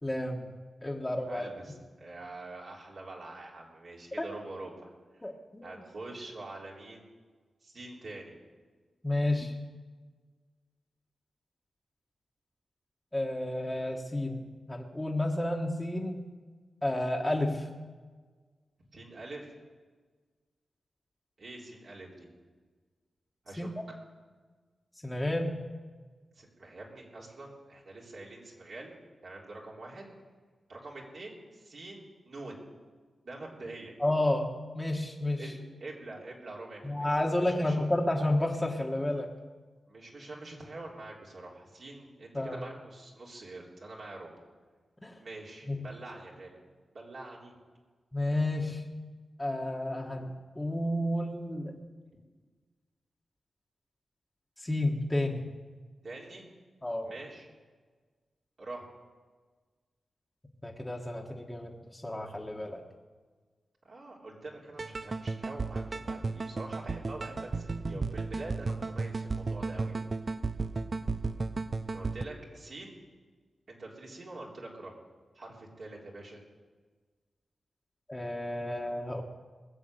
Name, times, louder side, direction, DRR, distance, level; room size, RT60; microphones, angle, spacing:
voice 1, 0.0-0.5 0.8-1.5 4.2-4.3 5.2-5.8 9.0-9.5 13.1-16.3 16.8-17.7 23.6-23.7 25.0-25.6 34.0-35.5 36.8-39.3 42.3-42.6 45.0-45.2 45.7-45.8 48.1-48.9 49.4-51.8 54.6-55.5 56.8-57.1 60.6-62.8 78.1-79.2, left 1 dB, 15° left, -1 dB, 1.5 m, -31 dB
voice 2, 1.3-5.2 5.6-7.1 7.6-8.4 18.9-19.5 21.4-22.3 23.4-23.7 26.4-28.9 29.2-30.1 30.7-32.6 33.2-33.9 35.4-37.8 39.9-44.3 45.2-46.5 46.9-47.5 56.0-56.5 57.0-57.5 58.6-58.9 63.8-70.0 71.9-72.9 73.7-75.0 75.4-76.4, right 2 dB, 65° right, -3 dB, 3.6 m, -45 dB
sound 1, 64.8-72.2, right 3 dB, 45° right, 0.6 m, -34 dB
20.0 x 7.3 x 7.9 m, 1.4 s
cardioid pair, 75°, 0 cm